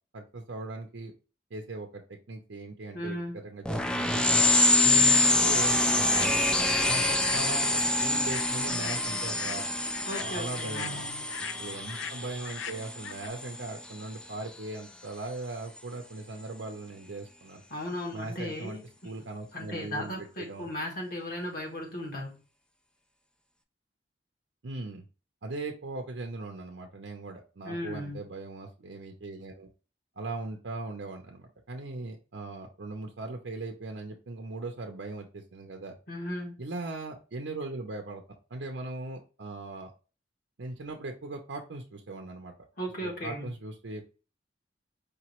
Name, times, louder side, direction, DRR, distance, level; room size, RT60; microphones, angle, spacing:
voice 1, 0.1-1.1 1.5-2.0 2.3-3.2 3.4-4.2 4.8-6.4 6.8-9.7 10.1-11.0 11.6-17.6 18.1-20.7 24.6-25.0 25.4-29.7 30.2-36.0 36.6-39.9 40.6-42.5 43.0-44.2, right 2 dB, 80° right, 3 dB, 0.6 m, -39 dB
voice 2, 2.9-3.4 10.1-11.2 17.7-18.8 19.5-22.4 27.6-28.2 36.1-36.6 42.8-43.5, left 1 dB, 55° left, 0 dB, 1.3 m, -36 dB
sound 1, 3.7-13.8, left 2 dB, 5° left, 0.3 m, -26 dB
sound 2, 6.0-6.9 7.2-13.3, left 8 dB, 85° left, 0.4 m, -41 dB
5.0 x 3.0 x 3.0 m, 0.33 s
head